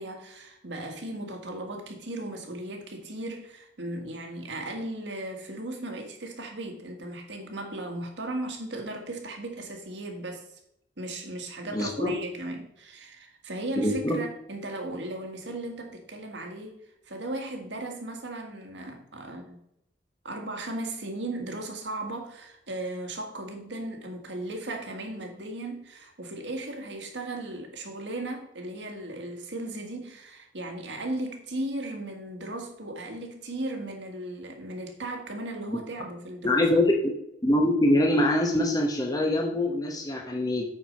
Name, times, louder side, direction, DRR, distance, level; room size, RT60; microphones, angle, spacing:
voice 1, 0.0-10.4 11.0-16.8 17.0-19.6 20.2-36.7, right 1 dB, 85° right, 3 dB, 1.7 m, -36 dB
voice 2, 11.7-12.1 13.7-14.2 35.7-35.8 36.4-37.1 37.4-40.6, left 1 dB, 20° left, 0 dB, 0.9 m, -24 dB
8.8 x 4.6 x 5.2 m, 0.78 s
head